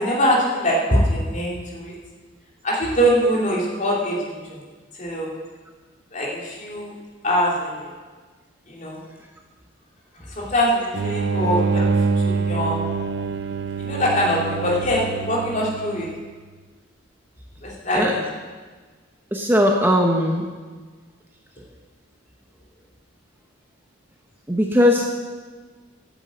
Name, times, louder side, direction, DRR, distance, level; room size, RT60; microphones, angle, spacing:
voice 1, 0.0-1.9 2.6-4.6 5.0-5.3 6.1-6.9 7.2-7.9 8.7-9.0 10.3-12.8 13.8-16.1 17.6-18.2, equal, 40° left, -4 dB, 2.9 m, -23 dB
sound 1, 10.9-16.3, right 4 dB, 60° right, 0.4 m, -25 dB
voice 2, 19.3-20.4 24.5-25.2, equal, 10° right, 1 dB, 0.9 m, -19 dB
10.0 x 8.2 x 8.0 m, 1.4 s
head